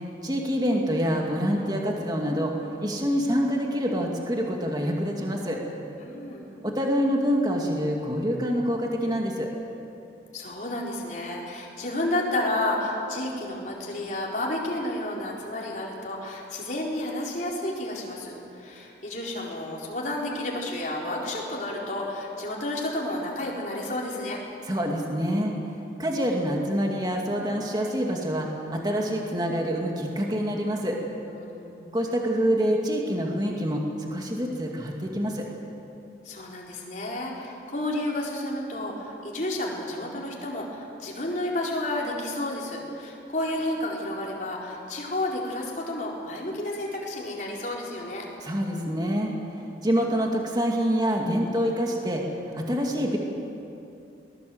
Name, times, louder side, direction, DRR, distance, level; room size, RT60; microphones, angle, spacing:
voice 1, 0.2-2.5 2.8-5.6 6.6-9.5 24.7-25.5 26.0-31.0 31.9-33.8 34.1-35.5 48.4-49.3 49.8-53.2, equal, 20° right, 0 dB, 2.2 m, -26 dB
voice 2, 6.0-6.5 10.3-24.4 31.3-31.8 36.2-48.2, left 1 dB, 45° left, -3 dB, 4.4 m, -31 dB
22.5 x 20.0 x 7.9 m, 2.7 s
head